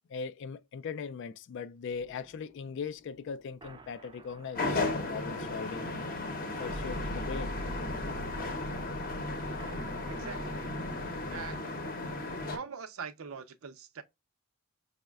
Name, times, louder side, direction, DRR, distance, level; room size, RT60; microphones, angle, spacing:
voice 1, 0.1-5.9 6.6-7.6, left 6 dB, 60° left, 0.3 m, -39 dB
sound 1, 1.9-11.6, right 1 dB, 20° right, 0.4 m, -44 dB
sound 2, 4.5-12.6, left 2 dB, 40° left, 0.7 m, -35 dB
voice 2, 10.1-10.7 11.3-11.7 12.5-14.0, right 5 dB, 80° right, 0.6 m, -42 dB
5.2 x 2.1 x 2.2 m
head